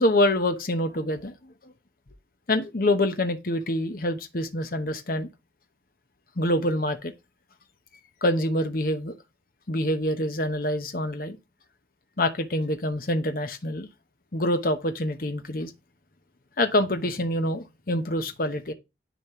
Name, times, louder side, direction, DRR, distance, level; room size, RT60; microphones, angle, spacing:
voice 1, 0.0-1.7 2.5-5.3 6.4-7.1 8.2-9.1 9.7-11.4 12.2-13.9 14.3-15.7 16.6-18.7, left 1 dB, 50° left, 1.0 m, -26 dB
10.0 x 4.2 x 3.0 m
head